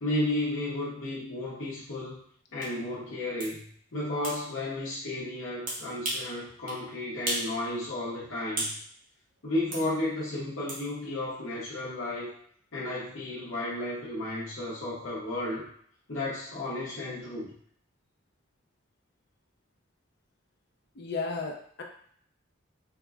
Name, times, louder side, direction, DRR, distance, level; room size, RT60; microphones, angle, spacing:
voice 1, 0.0-2.2 2.5-3.6 3.9-8.7 9.4-12.3 12.7-15.7 16.1-17.5, left 1 dB, 80° left, -9 dB, 0.9 m, -33 dB
sound 1, 2.6-2.7 3.4-3.5 4.2-4.4 5.7-6.3 6.7-6.8 7.3-7.5 7.9-8.8 9.7-9.9 10.7-10.8, right 1 dB, 45° right, 1.0 m, -33 dB
voice 2, 20.9-21.8, left 4 dB, 55° left, 2 dB, 0.5 m, -34 dB
4.6 x 2.1 x 2.4 m, 0.62 s
head